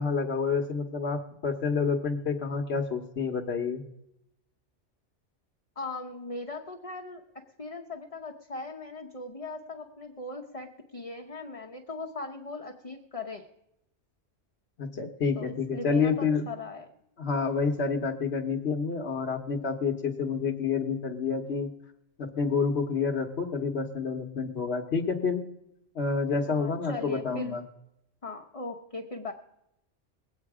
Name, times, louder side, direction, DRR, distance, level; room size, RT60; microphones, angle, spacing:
voice 1, 0.0-3.8 14.8-16.5 17.2-21.7 22.2-25.4 25.9-27.6, left 5 dB, 60° left, 3 dB, 1.3 m, -28 dB
voice 2, 5.8-13.5 15.3-16.9 20.8-20.9 26.5-27.6 28.2-29.3, left 3 dB, 30° left, 2 dB, 1.0 m, -39 dB
21.0 x 8.6 x 4.8 m, 0.83 s
omnidirectional pair, 1.2 m